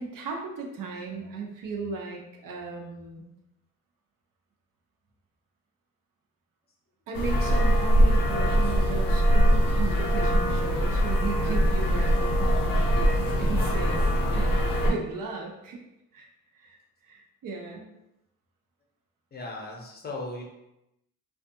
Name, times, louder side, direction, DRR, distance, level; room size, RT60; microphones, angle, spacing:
voice 1, 0.0-3.2 7.1-14.0 14.3-15.8 16.1-16.3 16.5-16.8 17.0-17.9, right 4 dB, 75° right, 0 dB, 0.6 m, -36 dB
sound 1, 7.1-14.9, equal, 75° left, 0.6 m, -22 dB
voice 2, 19.3-20.4, left 2 dB, 30° left, -1 dB, 0.5 m, -37 dB
2.6 x 2.3 x 2.6 m, 0.87 s
cardioid pair, 120°, 34 cm